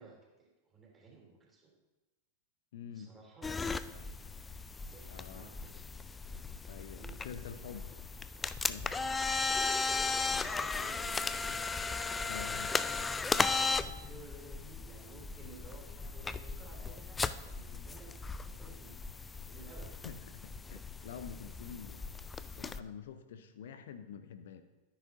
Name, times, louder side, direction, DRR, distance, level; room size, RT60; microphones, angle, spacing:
voice 1, 0.0-1.8 2.9-3.5 3.8-4.3 4.8-5.8 6.9-7.8 9.4-11.5 11.9-12.8 13.5-18.9 19.4-19.9, right 3 dB, 20° right, -2 dB, 3.0 m, -55 dB
voice 2, 2.7-3.1 3.8-4.1 5.1-5.5 6.7-7.9 8.7-8.9 9.3-9.5 12.3-12.7 20.0-22.1 22.5-24.6, left 7 dB, 60° left, 10 dB, 0.7 m, -47 dB
sound 1, 3.4-22.8, left 4 dB, 15° left, 0.3 m, -36 dB
13.0 x 9.8 x 2.7 m, 1.1 s
figure-of-eight pair, 90°, 0 cm